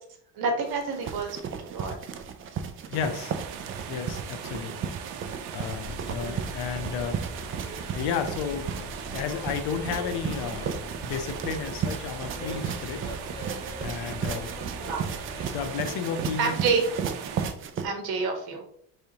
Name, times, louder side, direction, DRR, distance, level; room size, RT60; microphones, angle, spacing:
voice 1, 0.3-2.0 6.2-6.5 14.8-15.0 16.4-16.8 17.8-18.7, right 4 dB, 65° right, 3 dB, 1.3 m, -28 dB
sound 1, 0.6-17.9, right 7 dB, 35° right, 0.4 m, -35 dB
voice 2, 2.9-3.3 3.9-4.9 5.5-7.2 7.9-10.7 11.0-13.0 13.8-14.5 15.5-16.5, left 7 dB, 70° left, 7 dB, 0.8 m, -32 dB
sound 2, 3.0-17.5, right 8 dB, 90° right, 0.7 m, -40 dB
Bus, 5.8-15.7, left 1 dB, 10° left, 0.8 m, -42 dB
4.8 x 3.3 x 2.8 m, 0.65 s
cardioid pair, 135°, 40 cm